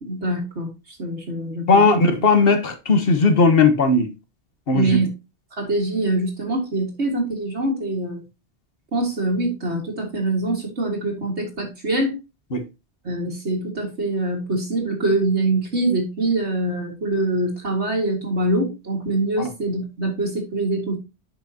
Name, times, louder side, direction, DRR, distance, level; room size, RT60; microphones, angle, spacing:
voice 1, 0.0-1.8 4.7-5.1 5.6-8.2 8.9-12.2 13.0-21.0, right 2 dB, 90° right, 2.5 m, -24 dB
voice 2, 1.7-4.1 4.7-5.0 12.5-12.6 19.4-19.5, left 3 dB, 60° left, 1.5 m, -17 dB
9.5 x 6.1 x 2.9 m
omnidirectional pair, 1.1 m